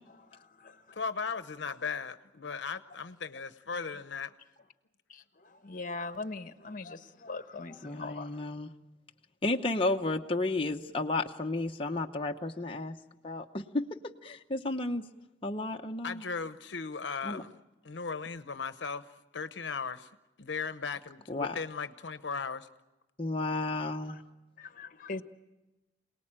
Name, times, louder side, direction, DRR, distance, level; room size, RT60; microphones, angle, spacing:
voice 1, 0.1-1.0 5.1-8.5 23.9-24.2 24.6-25.2, left 3 dB, 45° left, 1.2 m, -42 dB
voice 2, 1.0-4.3 16.0-17.6 17.8-19.1 19.3-20.1 20.4-22.7, left 5 dB, 75° left, 0.9 m, -37 dB
voice 3, 7.8-8.7 9.4-13.0 13.2-13.9 14.2-15.0 15.4-16.2 17.2-17.4 21.3-21.5 23.2-24.2, left 2 dB, 30° left, 0.9 m, -32 dB
27.5 x 19.0 x 8.8 m
head